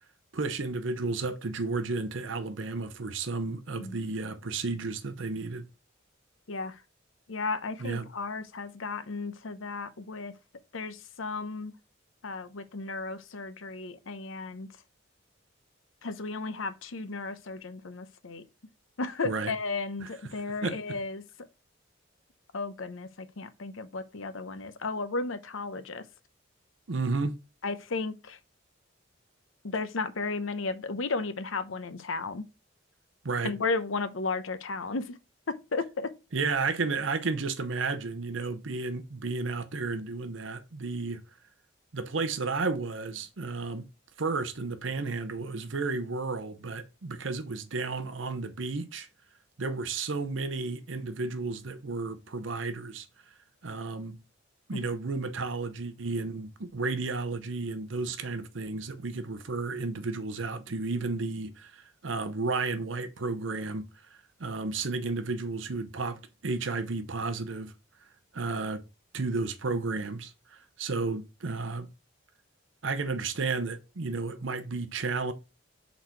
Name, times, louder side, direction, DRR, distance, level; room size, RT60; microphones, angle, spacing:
voice 1, 0.3-5.7 7.8-8.1 19.2-19.5 20.0-20.1 20.6-21.0 26.9-27.3 33.2-33.5 36.3-41.2 41.9-43.9 44.2-49.1 49.6-53.3 53.6-54.2 54.7-67.7 68.3-68.8 69.1-71.9 72.8-75.3, right 3 dB, 70° right, 0.7 m, -32 dB
voice 2, 6.5-6.8 7.3-10.3 10.7-11.7 12.2-14.7 16.0-18.4 19.0-21.2 22.5-26.0 27.6-28.4 29.6-32.5 33.4-35.2 35.5-36.1 54.7-54.8, left 3 dB, 85° left, 0.8 m, -34 dB
6.5 x 4.1 x 4.6 m
head